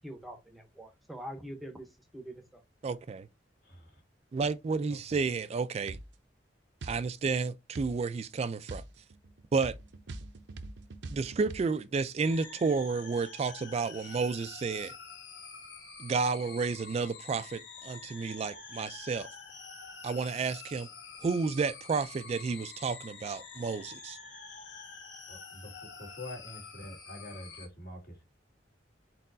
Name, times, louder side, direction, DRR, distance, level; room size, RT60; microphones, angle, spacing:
voice 1, 0.0-1.9 2.1-2.4, equal, ahead, 0.8 m, -44 dB
voice 2, 2.8-3.3 4.3-6.0 6.8-8.8 9.5-9.8 11.1-14.9 16.0-19.3 20.0-20.9 21.2-24.2, right 4 dB, 35° right, 0.3 m, -31 dB
voice 3, 4.9-5.2 25.3-25.7 26.0-28.2, left 1 dB, 55° left, 2.0 m, -45 dB
sound 1, 5.9-6.1 6.8-7.0 7.7-8.0 8.7-11.6, right 2 dB, 80° right, 0.6 m, -43 dB
sound 2, 12.2-27.7, left 5 dB, 85° left, 1.2 m, -47 dB
4.3 x 4.1 x 2.6 m
head